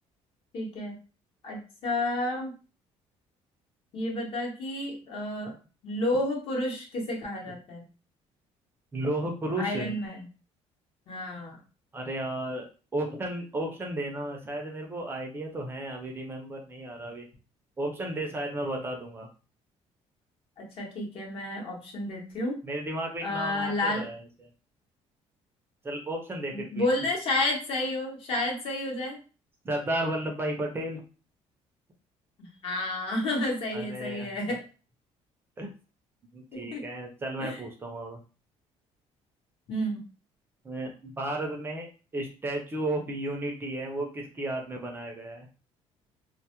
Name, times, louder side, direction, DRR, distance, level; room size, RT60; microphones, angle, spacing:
voice 1, 0.5-0.9 1.4-2.5 3.9-5.5 5.8-7.8 9.6-10.3 11.1-11.6 20.6-22.6 23.2-24.1 26.5-29.2 32.4-34.6 36.5-36.8 37.4-37.6 39.7-40.0, left 1 dB, 50° left, 0 dB, 0.8 m, -31 dB
voice 2, 8.9-9.9 11.9-12.7 12.9-17.2 17.8-19.3 22.6-24.5 25.8-26.8 29.6-31.0 33.7-34.3 35.6-35.7 36.3-38.2 40.6-45.5, right 1 dB, 20° right, 1 dB, 0.4 m, -33 dB
2.1 x 2.0 x 2.8 m, 0.35 s
cardioid pair, 155°, 12 cm